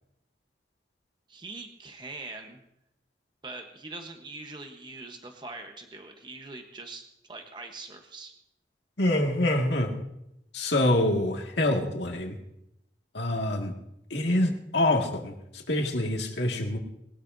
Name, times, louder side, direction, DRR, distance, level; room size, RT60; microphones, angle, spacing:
voice 1, 1.3-2.6 3.4-8.3, right 3 dB, 25° right, 5 dB, 1.0 m, -42 dB
voice 2, 9.0-10.0 10.5-12.4 13.1-13.7 14.1-16.8, left 1 dB, 80° left, 1 dB, 2.0 m, -26 dB
21.0 x 12.5 x 2.7 m, 0.83 s
head